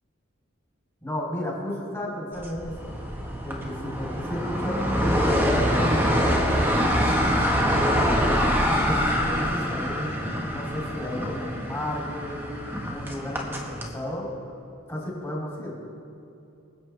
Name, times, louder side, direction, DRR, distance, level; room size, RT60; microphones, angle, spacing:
voice 1, 1.0-2.9 3.4-8.1 8.7-12.4 12.6-14.6 14.9-15.7, left 1 dB, 15° left, -6 dB, 3.6 m, -33 dB
sound 1, 2.4-13.9, equal, 10° right, 1.5 m, -25 dB
25.5 x 8.7 x 3.5 m, 2.8 s
head